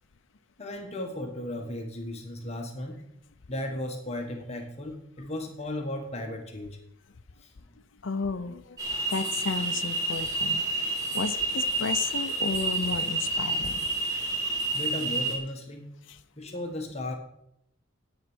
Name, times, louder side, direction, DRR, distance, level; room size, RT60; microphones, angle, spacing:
voice 1, 0.6-3.0 3.5-6.8 7.4-7.8 10.3-10.8 14.7-15.9 16.4-17.1, left 1 dB, 30° left, 3 dB, 1.4 m, -36 dB
voice 2, 8.0-8.8 9.1-13.9 16.5-16.6, left 4 dB, 60° left, 9 dB, 0.6 m, -33 dB
sound 1, 8.8-15.4, right 2 dB, 15° right, 2.5 m, -29 dB
10.5 x 9.0 x 6.2 m, 0.77 s
head